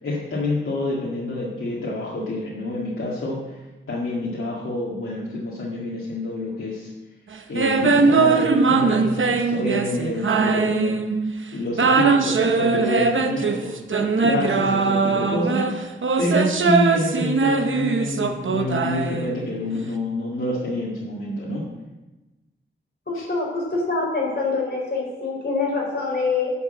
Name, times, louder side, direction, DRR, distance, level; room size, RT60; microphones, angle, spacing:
voice 1, 0.0-3.6 3.9-6.9 7.5-11.0 11.5-15.8 16.2-21.6 23.1-23.3, left 1 dB, 85° left, -5 dB, 1.9 m, -27 dB
sound 1, 7.6-11.3 11.7-19.6, right 4 dB, 70° right, 1.0 m, -21 dB
voice 2, 23.1-26.5, left 4 dB, 50° left, -2 dB, 4.0 m, -25 dB
10.5 x 6.3 x 7.7 m, 1.1 s
wide cardioid pair, 85°, 21 cm